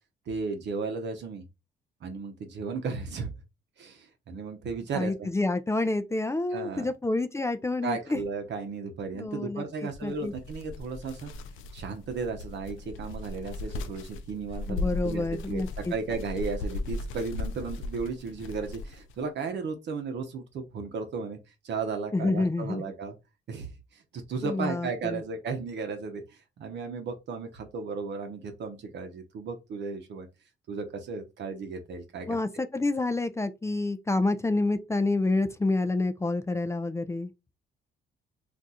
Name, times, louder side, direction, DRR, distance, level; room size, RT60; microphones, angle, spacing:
voice 1, 0.3-1.4 2.0-3.3 3.8-5.3 6.5-6.9 7.8-11.3 11.7-21.4 21.6-23.1 23.5-30.3 30.7-32.4, right 4 dB, 60° right, 0.8 m, -35 dB
voice 2, 4.9-8.2 9.1-9.6 10.0-10.3 14.7-15.9 22.1-22.8 24.4-25.2 32.3-37.3, left 2 dB, 15° left, 0.4 m, -28 dB
sound 1, 9.9-19.2, left 2 dB, 90° left, 0.4 m, -37 dB
2.5 x 2.3 x 4.0 m
cardioid pair, 90°, 20 cm